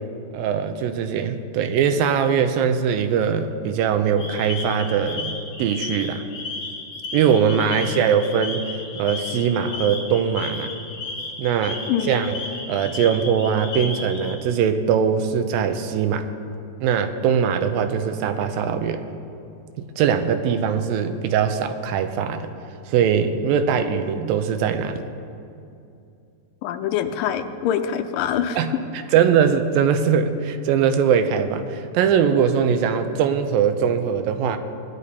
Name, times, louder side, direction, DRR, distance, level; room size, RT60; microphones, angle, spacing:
voice 1, 0.3-6.2 7.1-8.6 9.0-10.8 11.4-12.3 12.7-16.3 16.8-19.0 20.0-22.5 22.9-25.0 28.6-34.6, right 7 dB, 85° right, 8 dB, 2.4 m, -21 dB
sound 1, 4.2-14.3, left 3 dB, 45° left, 2.8 m, -34 dB
voice 2, 11.9-12.2 26.6-28.6, left 9 dB, 80° left, 7 dB, 2.2 m, -25 dB
19.5 x 10.0 x 4.2 m, 2.5 s
omnidirectional pair, 4.2 m